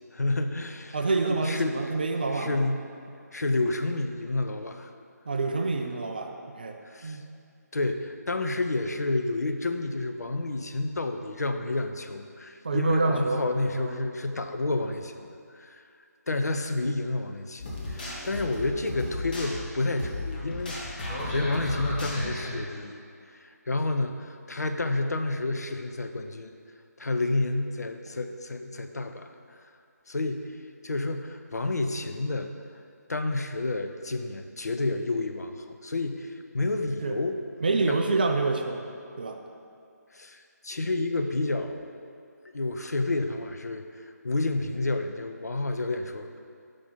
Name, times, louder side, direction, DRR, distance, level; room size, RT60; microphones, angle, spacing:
voice 1, 0.1-1.9 2.3-2.8 3.3-4.9 6.9-7.2 7.7-15.8 16.3-23.0 23.4-26.5 27.0-29.6 30.1-30.5 30.8-32.5 33.1-37.4 37.9-38.0 40.1-42.2 42.5-43.8 44.2-46.4, left 2 dB, 65° left, 6 dB, 0.4 m, -30 dB
voice 2, 0.9-2.7 5.3-7.3 12.6-13.4 13.7-14.1 37.0-37.2 37.6-38.8 39.2-39.4, right 3 dB, 30° right, 4 dB, 0.4 m, -27 dB
sound 1, 17.6-22.6, left 1 dB, 30° left, 0.9 m, -34 dB
5.2 x 4.2 x 5.3 m, 2.4 s
figure-of-eight pair, 155°, 9 cm